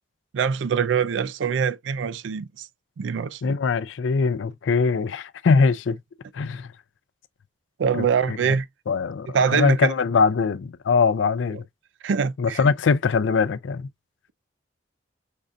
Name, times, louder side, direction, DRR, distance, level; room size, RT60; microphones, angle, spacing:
voice 1, 0.3-2.7 3.0-3.5 7.8-8.7 9.3-9.9 12.0-12.6, right 6 dB, 80° right, 0.4 m, -24 dB
voice 2, 3.4-6.0 6.3-6.7 7.9-8.4 8.9-11.6 12.4-13.9, left 5 dB, 90° left, 0.4 m, -22 dB
5.3 x 2.5 x 2.3 m
head